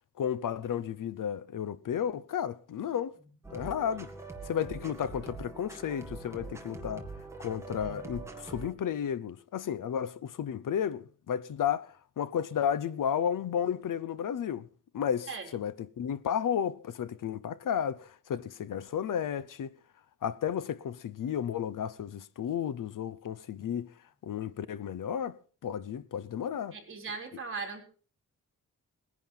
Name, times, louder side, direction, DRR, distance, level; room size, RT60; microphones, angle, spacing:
voice 1, 0.2-3.1 3.5-4.1 4.4-7.1 7.4-14.7 14.9-19.7 20.2-23.9 24.2-25.4 25.6-26.8, left 8 dB, 75° left, 0.8 m, -33 dB
sound 1, 3.4-8.7, right 3 dB, 10° right, 2.1 m, -43 dB
voice 2, 26.7-27.8, right 4 dB, 40° right, 4.1 m, -39 dB
20.0 x 10.5 x 5.7 m
wide cardioid pair, 160°, 33 cm